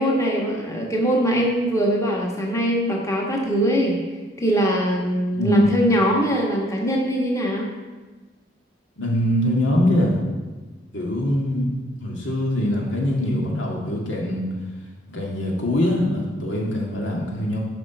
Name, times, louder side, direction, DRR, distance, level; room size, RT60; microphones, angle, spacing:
voice 1, 0.0-4.0 4.4-7.7, equal, 15° left, -1 dB, 1.3 m, -22 dB
voice 2, 5.3-5.6 9.0-10.2 10.9-11.7 12.0-14.4 15.1-17.6, left 1 dB, 90° left, -2 dB, 2.2 m, -22 dB
11.0 x 5.2 x 6.0 m, 1.3 s
head